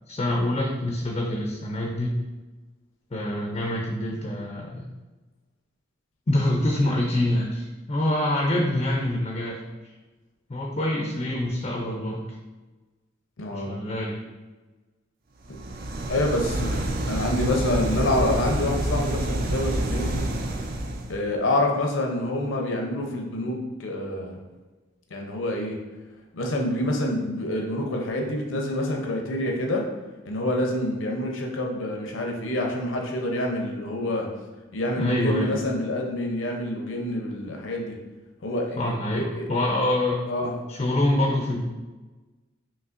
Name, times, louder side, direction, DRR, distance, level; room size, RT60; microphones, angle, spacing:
voice 1, 0.1-2.2 3.1-4.9 6.3-9.6 10.5-12.3 13.5-14.2 35.0-35.6 38.8-40.2 40.7-41.7, left 1 dB, 30° left, 0 dB, 0.4 m, -25 dB
voice 2, 13.4-13.7 16.1-16.8 17.1-20.2 21.1-24.4 25.1-25.8 26.3-29.9 30.2-34.3 34.7-38.0 38.4-39.7 40.3-40.5, left 1 dB, 75° left, 1 dB, 0.6 m, -27 dB
sound 1, 15.5-21.2, right 1 dB, 45° right, 0.4 m, -28 dB
5.4 x 2.9 x 2.5 m, 1.2 s
head